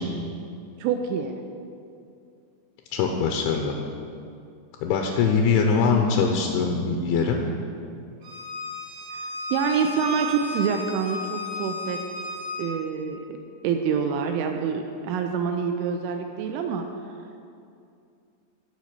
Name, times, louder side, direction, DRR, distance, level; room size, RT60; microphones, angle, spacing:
voice 1, 0.8-1.3 9.1-9.3 9.5-12.0 12.6-13.4 13.6-16.8, right 6 dB, 85° right, 4 dB, 2.7 m, -26 dB
voice 2, 2.9-3.7 4.8-7.4, left 5 dB, 80° left, 2 dB, 2.8 m, -22 dB
Bowed string instrument, 8.2-12.7, left 2 dB, 50° right, 1.4 m, -34 dB
15.0 x 5.3 x 6.6 m, 2.5 s
omnidirectional pair, 6.0 m